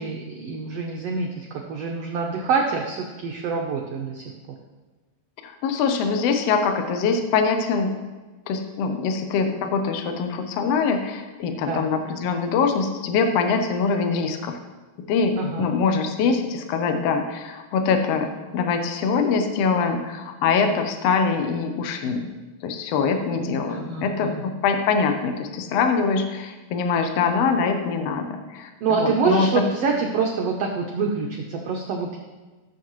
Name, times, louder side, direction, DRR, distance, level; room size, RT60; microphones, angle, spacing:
voice 1, 0.0-4.2 11.7-11.9 15.4-15.7 23.7-24.4 28.8-32.2, right 5 dB, 90° right, 0 dB, 1.4 m, -26 dB
voice 2, 5.4-7.9 8.5-14.6 15.1-15.3 15.6-22.3 22.6-29.6, left 5 dB, 80° left, 6 dB, 1.4 m, -23 dB
15.0 x 7.4 x 3.1 m, 1.3 s
omnidirectional pair, 4.0 m